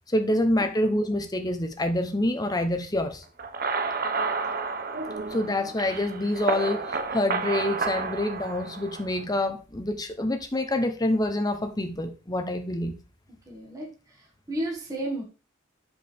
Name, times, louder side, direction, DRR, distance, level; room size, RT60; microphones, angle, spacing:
voice 1, 0.1-3.2 5.3-13.0, left 1 dB, 20° left, 7 dB, 1.0 m, -27 dB
sound 1, 3.4-9.2, right 4 dB, 50° right, 1.0 m, -31 dB
voice 2, 13.5-15.2, right 1 dB, 20° right, -2 dB, 2.1 m, -33 dB
11.5 x 5.0 x 3.6 m, 0.34 s
head